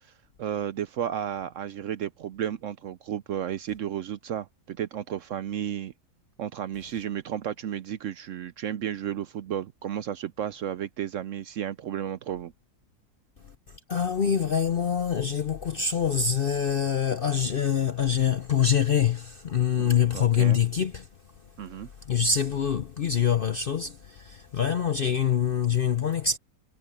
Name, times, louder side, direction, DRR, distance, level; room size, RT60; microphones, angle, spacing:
voice 1, 0.4-5.9 6.4-12.5 19.8-19.9 20.1-20.6 21.6-21.9, right 10 dB, 65° right, 0.8 m, -33 dB
voice 2, 13.9-21.1 22.0-26.4, left 8 dB, 55° left, 0.6 m, -25 dB
omnidirectional pair, 1.7 m